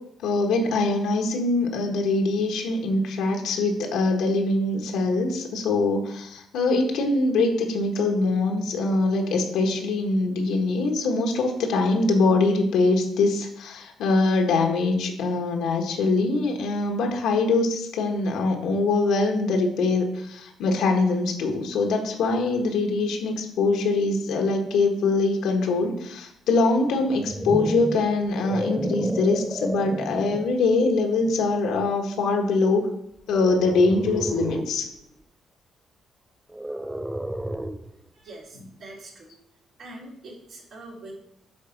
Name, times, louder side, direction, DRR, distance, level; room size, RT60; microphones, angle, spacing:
voice 1, 0.2-32.9 33.3-34.9, left 3 dB, 85° left, 3 dB, 1.5 m, -23 dB
sound 1, 27.0-30.6 31.2-31.5 33.3-34.8 36.5-38.0, right 1 dB, 10° right, 0.4 m, -31 dB
voice 2, 38.1-39.3 39.8-41.1, right 2 dB, 65° right, -4 dB, 2.9 m, -43 dB
9.3 x 3.4 x 5.8 m, 0.74 s
cardioid pair, 90°, 0 cm